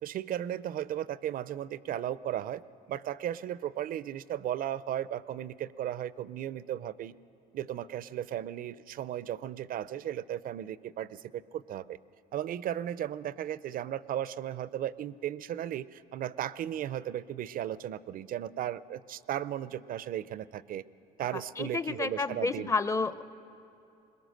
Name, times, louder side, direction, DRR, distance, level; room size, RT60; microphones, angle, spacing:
voice 1, 0.0-2.6 2.9-7.1 7.5-12.0 12.3-20.8 21.2-22.7, right 11 dB, 55° right, 18 dB, 0.5 m, -35 dB
voice 2, 21.3-23.2, left 4 dB, 20° left, 13 dB, 0.6 m, -31 dB
22.0 x 21.0 x 6.5 m, 2.8 s
cardioid pair, 110°, 17 cm